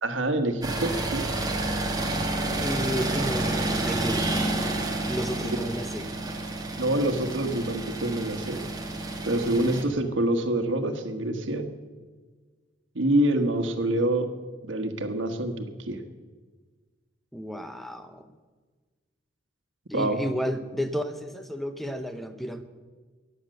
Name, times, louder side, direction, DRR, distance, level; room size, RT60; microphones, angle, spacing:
voice 1, 0.0-1.3 5.4-5.6 6.8-8.6 9.2-11.7 12.9-14.3 14.6-16.0 19.9-20.2, right 1 dB, 85° right, 7 dB, 1.3 m, -26 dB
sound 1, 0.6-9.8, right 2 dB, 20° right, 1.7 m, -29 dB
voice 2, 2.6-4.3 5.1-6.1 13.4-14.0 17.3-18.3 19.9-22.6, equal, ahead, 8 dB, 0.7 m, -32 dB
14.0 x 9.7 x 6.6 m, 1.4 s
head